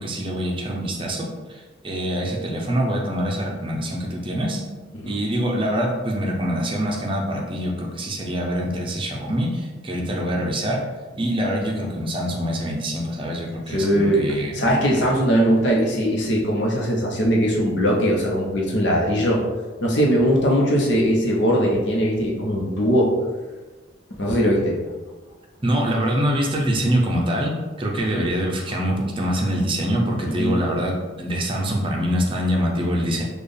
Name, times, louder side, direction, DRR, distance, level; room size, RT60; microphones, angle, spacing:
voice 1, 0.0-4.6 5.1-10.8 11.1-14.6 25.6-33.2, equal, 30° right, -1 dB, 0.6 m, -24 dB
voice 2, 13.7-14.3 14.5-19.4 19.8-23.2 24.2-24.8 28.1-28.3 30.4-30.6, equal, 70° left, -2 dB, 0.9 m, -20 dB
4.3 x 2.4 x 3.3 m, 1.3 s
head